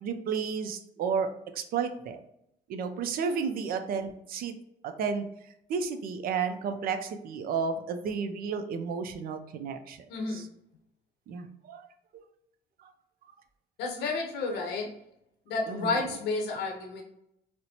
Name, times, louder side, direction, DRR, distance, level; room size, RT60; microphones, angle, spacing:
voice 1, 0.0-2.2 2.7-4.5 4.8-5.2 5.7-10.0 10.3-10.5 11.3-11.8 12.1-12.2 12.8-12.9 15.7-16.1, right 6 dB, 60° right, 8 dB, 0.5 m, -32 dB
voice 2, 10.1-10.4 13.8-14.9 15.5-17.0, left 3 dB, 80° left, 1 dB, 0.8 m, -31 dB
4.3 x 2.1 x 2.7 m, 0.79 s
cardioid pair, 110°, 17 cm